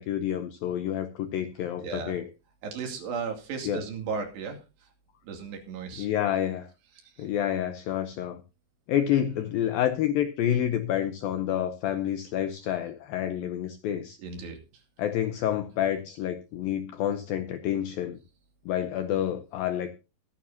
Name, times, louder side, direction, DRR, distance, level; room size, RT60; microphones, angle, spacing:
voice 1, 0.0-2.3 3.7-3.8 6.0-6.7 7.2-8.4 8.9-14.2 15.0-18.2 18.7-19.9, left 11 dB, 75° left, 9 dB, 2.2 m, -28 dB
voice 2, 1.8-2.2 2.6-4.9 5.2-6.1 7.0-7.3 14.2-14.8, right 5 dB, 70° right, 4 dB, 4.6 m, -36 dB
22.0 x 9.7 x 2.7 m, 0.30 s
omnidirectional pair, 5.0 m